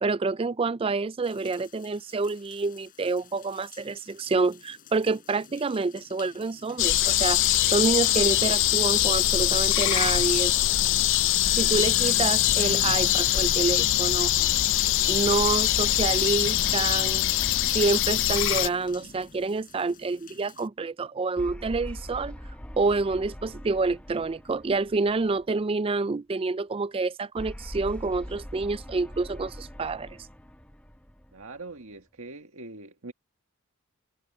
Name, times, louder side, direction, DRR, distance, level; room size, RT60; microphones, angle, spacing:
voice 1, 0.0-10.5 11.5-14.3 15.1-17.3 17.7-22.4 22.8-30.2, right 3 dB, 25° right, 0.3 m, -28 dB
sound 1, 1.2-20.7, left 5 dB, 40° left, 5.8 m, -51 dB
sound 2, 6.8-18.7, left 14 dB, 55° left, 0.4 m, -23 dB
sound 3, 15.4-19.9 21.4-25.7 27.4-31.9, equal, 5° left, 0.9 m, -42 dB
voice 2, 31.3-33.1, right 3 dB, 65° right, 1.8 m, -42 dB
head